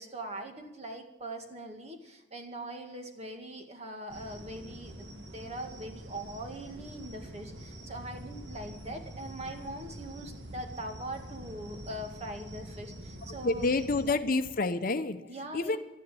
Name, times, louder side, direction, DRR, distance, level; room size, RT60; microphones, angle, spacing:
voice 1, 0.0-14.2 15.3-15.8, right 1 dB, 35° right, 5 dB, 2.0 m, -42 dB
sound 1, 4.1-14.1, right 1 dB, 70° right, 2.1 m, -45 dB
voice 2, 13.4-15.8, left 3 dB, 50° left, 10 dB, 0.8 m, -29 dB
13.0 x 10.0 x 8.4 m, 0.99 s
head